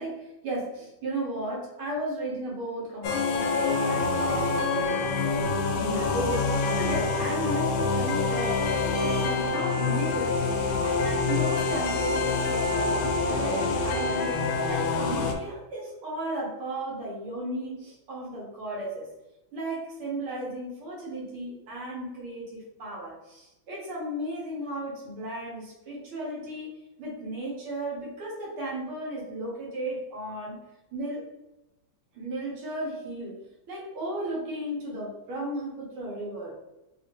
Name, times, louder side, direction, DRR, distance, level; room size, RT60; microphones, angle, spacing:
voice 1, 0.0-5.5 5.8-6.4 6.7-10.4 10.8-14.4 14.7-19.1 19.5-26.7 27.0-30.6 30.9-31.2 32.2-33.4 33.7-36.6, right 1 dB, 80° right, -4 dB, 2.2 m, -35 dB
sound 1, 3.0-15.3, left 4 dB, 80° left, 1.4 m, -26 dB
4.2 x 2.7 x 3.3 m, 0.97 s
omnidirectional pair, 2.3 m